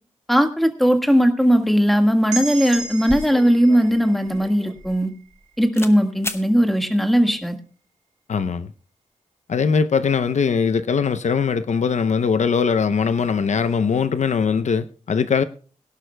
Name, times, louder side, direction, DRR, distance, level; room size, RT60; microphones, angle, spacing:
voice 1, 0.3-5.1 5.6-7.6, equal, ahead, 1.6 m, -18 dB
sound 1, 2.3-6.1, right 4 dB, 60° right, 2.8 m, -35 dB
sound 2, 2.8-5.4 5.7-6.0 6.2-6.5, left 2 dB, 20° left, 1.0 m, -34 dB
voice 2, 8.3-8.7 9.5-15.4, left 6 dB, 65° left, 0.7 m, -21 dB
22.0 x 11.5 x 2.2 m
wide cardioid pair, 130°, 13 cm